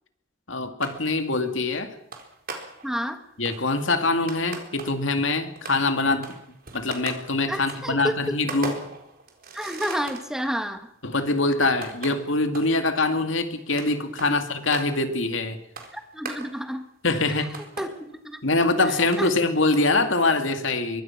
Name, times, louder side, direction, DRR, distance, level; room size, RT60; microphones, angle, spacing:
voice 1, 0.5-1.9 3.4-6.3 6.7-8.8 11.0-15.6 17.0-17.6 18.4-21.0, left 3 dB, 70° left, 7 dB, 2.5 m, -24 dB
sound 1, 0.8-1.5 2.1-3.0 3.4-5.2 5.6-10.4 10.9-11.0 11.7-12.8 13.4-13.5 13.8-15.1 15.8-16.8 17.2-18.2 18.5-18.6 19.1-19.4 19.7-20.0, right 4 dB, 50° right, 4.0 m, -39 dB
voice 2, 2.8-3.2 7.5-8.3 9.5-10.8 14.2-14.4 15.9-16.8 17.3-17.5 17.8-18.4 19.2-19.3, equal, 5° right, 7 dB, 1.6 m, -30 dB
24.5 x 22.5 x 6.0 m, 0.73 s
head